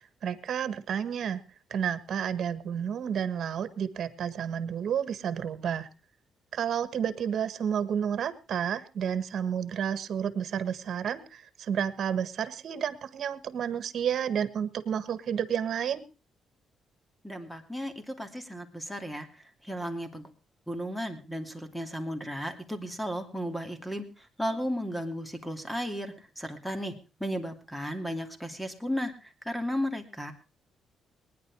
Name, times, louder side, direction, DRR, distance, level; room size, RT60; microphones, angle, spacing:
voice 1, 0.2-1.4 1.7-5.9 6.5-16.0, right 8 dB, 60° right, 13 dB, 1.5 m, -31 dB
voice 2, 17.2-19.3 19.6-20.3 20.7-24.0 24.4-26.9 27.2-30.3, equal, 5° left, 7 dB, 2.7 m, -34 dB
19.5 x 10.5 x 4.8 m, 0.33 s
cardioid pair, 90°, 0 cm